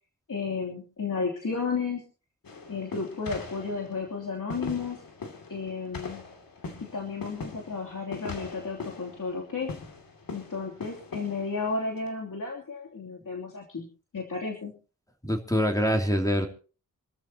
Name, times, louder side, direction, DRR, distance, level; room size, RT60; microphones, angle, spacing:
voice 1, 0.3-2.0 2.7-5.0 5.5-6.2 6.9-9.7 10.3-13.9 14.1-14.7, left 4 dB, 65° left, -1 dB, 3.0 m, -33 dB
sound 1, 2.4-12.1, left 4 dB, 85° left, 2.7 m, -41 dB
voice 2, 15.2-16.5, equal, 10° left, 2 dB, 2.9 m, -24 dB
27.0 x 13.5 x 2.9 m, 0.36 s
wide cardioid pair, 80°, 34 cm